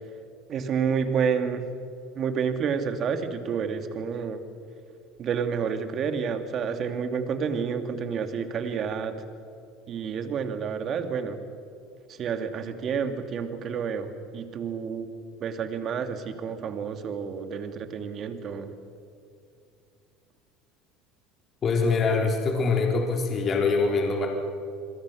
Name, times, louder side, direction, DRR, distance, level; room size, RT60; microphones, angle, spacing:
voice 1, 0.5-1.6 2.1-4.4 5.2-9.2 9.9-11.4 12.1-15.1 15.4-18.7, right 6 dB, 45° right, 7 dB, 2.4 m, -29 dB
voice 2, 21.6-24.3, left 4 dB, 40° left, 1 dB, 3.7 m, -24 dB
28.5 x 22.0 x 6.5 m, 2.5 s
supercardioid pair, 105°, 0 cm